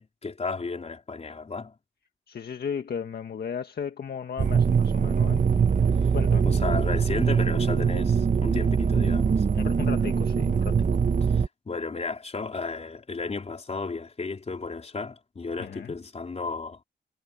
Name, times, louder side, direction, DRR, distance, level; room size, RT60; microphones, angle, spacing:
voice 1, 0.0-1.7 6.4-9.4 11.2-16.8, left 4 dB, 35° left, 4.3 m, -34 dB
voice 2, 2.3-5.4 6.1-6.5 9.5-10.8 15.6-15.9, left 7 dB, 55° left, 1.7 m, -35 dB
sound 1, 4.4-11.5, right 6 dB, 40° right, 1.4 m, -23 dB
cardioid pair, 85°, 19 cm